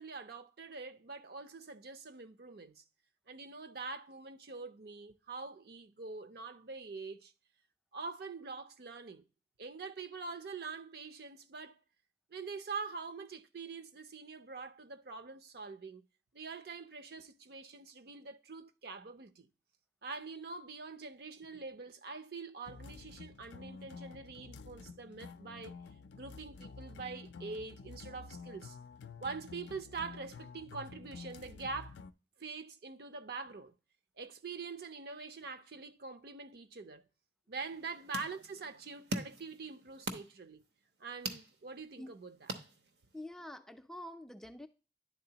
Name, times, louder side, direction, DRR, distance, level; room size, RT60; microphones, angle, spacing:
voice 1, 0.0-2.8 3.3-7.3 7.9-9.3 9.6-11.8 12.3-16.0 16.3-19.5 20.0-25.8 26.2-28.8 29.2-32.0 32.4-33.7 34.2-37.1 37.5-40.6 41.0-42.5, right 4 dB, 60° right, 0.6 m, -44 dB
sound 1, 22.7-32.1, left 4 dB, 80° left, 0.4 m, -50 dB
sound 2, 37.6-43.3, right 2 dB, 75° right, 0.9 m, -44 dB
voice 2, 43.1-44.7, left 1 dB, 5° left, 0.3 m, -46 dB
10.5 x 4.0 x 2.8 m
head